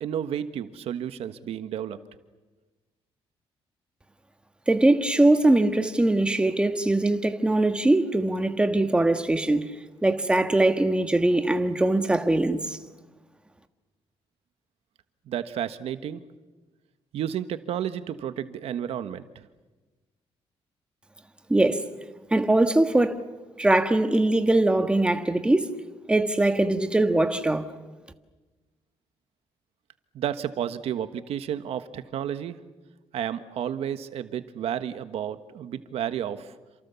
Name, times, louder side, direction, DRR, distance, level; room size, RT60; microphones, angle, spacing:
voice 1, 0.0-2.0 15.3-16.2 17.1-19.5 30.1-32.6 33.1-36.5, right 9 dB, 75° right, 1.4 m, -31 dB
voice 2, 4.7-9.6 10.0-12.8 21.5-21.8 22.3-23.2 23.6-25.7 26.1-27.6, right 2 dB, 10° right, 1.5 m, -21 dB
28.5 x 27.0 x 7.0 m
cardioid pair, 130°, 10 cm